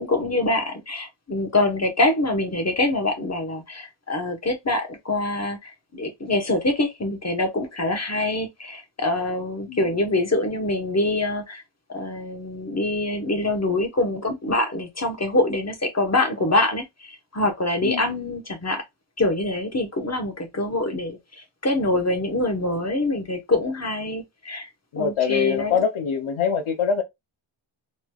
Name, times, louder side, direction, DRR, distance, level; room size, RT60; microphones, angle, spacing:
voice 1, 0.0-11.6 11.9-18.8 19.2-21.2 21.6-24.7 25.0-25.8, left 2 dB, 30° left, 1.0 m, -25 dB
voice 2, 17.8-18.3 24.9-27.0, left 7 dB, 75° left, 0.7 m, -24 dB
3.2 x 2.9 x 2.2 m
wide cardioid pair, 70°, 49 cm